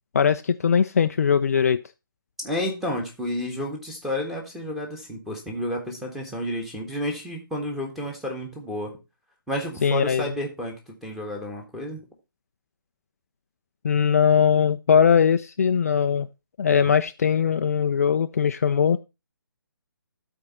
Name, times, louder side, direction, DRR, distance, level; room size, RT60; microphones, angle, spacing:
voice 1, 0.1-1.8 9.8-10.3 13.8-16.3 16.6-19.0, left 7 dB, 40° left, 0.4 m, -20 dB
voice 2, 2.4-8.9 9.5-12.0, left 1 dB, ahead, 1.5 m, -31 dB
12.5 x 4.4 x 4.1 m
figure-of-eight pair, 145°, 12 cm